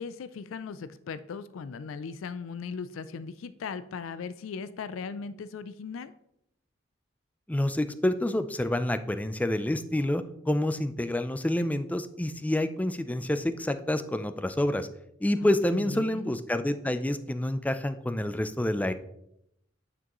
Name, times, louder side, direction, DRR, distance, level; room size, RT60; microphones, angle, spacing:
voice 1, 0.0-6.1 15.4-16.4, left 5 dB, 85° left, 13 dB, 0.4 m, -38 dB
voice 2, 7.5-14.9 15.2-18.9, left 1 dB, 10° left, 11 dB, 0.4 m, -28 dB
9.4 x 6.1 x 3.0 m, 0.78 s
head